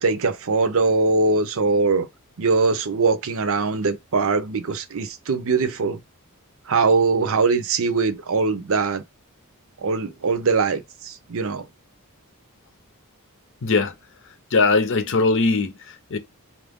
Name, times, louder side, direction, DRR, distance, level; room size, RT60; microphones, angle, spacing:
voice 1, 0.0-2.1 2.4-6.0 6.7-9.0 9.8-11.7, right 4 dB, 65° right, 0.6 m, -21 dB
voice 2, 13.6-13.9 14.5-16.2, left 3 dB, 60° left, 0.7 m, -20 dB
4.1 x 2.5 x 3.5 m
head